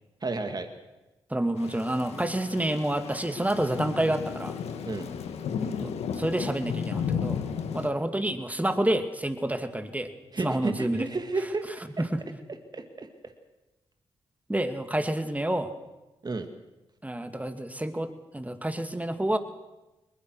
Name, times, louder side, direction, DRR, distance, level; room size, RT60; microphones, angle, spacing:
voice 1, 0.2-0.7 4.9-5.1 10.3-11.7 12.0-12.1 12.7-13.1 16.2-16.5, right 3 dB, 40° right, 7 dB, 2.1 m, -31 dB
voice 2, 1.3-4.6 5.8-7.4 7.7-10.1 10.4-11.1 12.0-12.2 14.5-15.7 17.0-19.4, right 1 dB, 15° right, 8 dB, 2.5 m, -28 dB
Thunder / Rain, 1.6-7.9, left 7 dB, 80° left, 1.5 m, -34 dB
21.5 x 21.0 x 6.4 m, 1.0 s
supercardioid pair, 40°, 11 cm